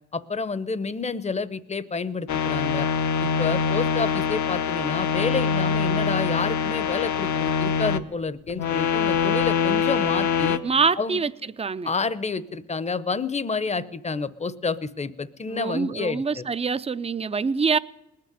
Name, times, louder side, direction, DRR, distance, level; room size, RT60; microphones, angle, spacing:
voice 1, 0.1-2.9 3.2-10.6 11.0-11.2 11.8-16.5, left 4 dB, 20° left, 0.8 m, -29 dB
sound 1, 2.3-8.0 8.5-10.6, left 6 dB, 70° left, 0.9 m, -24 dB
voice 2, 10.6-11.3 11.6-11.9 15.5-17.8, right 5 dB, 20° right, 0.5 m, -25 dB
19.5 x 6.7 x 9.9 m
cardioid pair, 90°, 30 cm